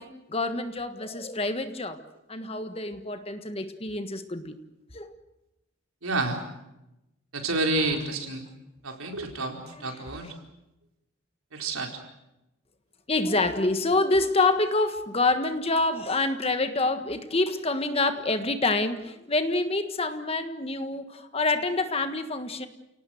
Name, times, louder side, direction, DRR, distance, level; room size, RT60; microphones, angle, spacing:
voice 1, 0.0-2.0 2.3-4.6 4.9-5.1 9.7-10.0 10.2-10.3 13.1-22.7, left 2 dB, 30° left, 9 dB, 1.5 m, -27 dB
voice 2, 6.0-6.4 7.3-8.5 8.8-10.3 11.5-11.9, right 2 dB, 90° right, 2 dB, 4.5 m, -29 dB
29.5 x 18.5 x 7.9 m, 0.93 s
head